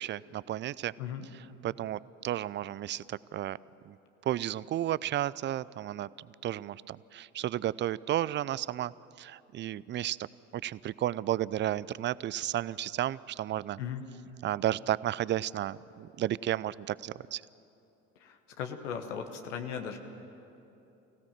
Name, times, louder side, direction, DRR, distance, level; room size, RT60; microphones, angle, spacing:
voice 1, 0.0-0.9 1.3-3.6 3.9-4.0 4.3-6.1 6.4-8.9 9.2-10.3 10.5-13.8 14.4-17.4, right 12 dB, 30° right, 20 dB, 0.4 m, -33 dB
voice 2, 18.2-20.0, left 7 dB, 75° left, 5 dB, 1.3 m, -37 dB
24.5 x 16.5 x 7.3 m, 2.9 s
hypercardioid pair, 60°, 36 cm